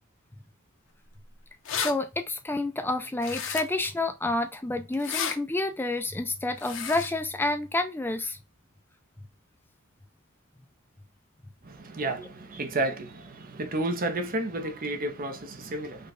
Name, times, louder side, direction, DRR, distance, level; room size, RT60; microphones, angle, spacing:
sound 1, 1.2-1.3 1.5-1.9 3.2-3.9 4.9-5.4 6.6-7.1, left 7 dB, 65° left, 1.0 m, -32 dB
voice 1, 1.7-8.4, left 2 dB, 10° left, 0.4 m, -29 dB
voice 2, 11.6-16.1, right 2 dB, 45° right, 0.8 m, -31 dB
5.2 x 2.4 x 4.1 m
head